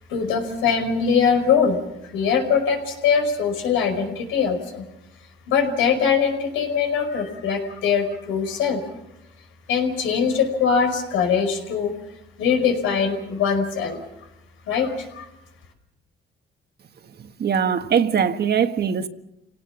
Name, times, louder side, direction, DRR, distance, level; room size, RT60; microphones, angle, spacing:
voice 1, 0.1-1.8 2.1-4.8 5.5-8.8 9.7-11.9 12.4-14.0 14.7-15.3, left 6 dB, 90° left, 5.3 m, -22 dB
voice 2, 17.4-19.1, right 7 dB, 55° right, 1.6 m, -21 dB
28.5 x 18.0 x 7.2 m
cardioid pair, 90°, 20 cm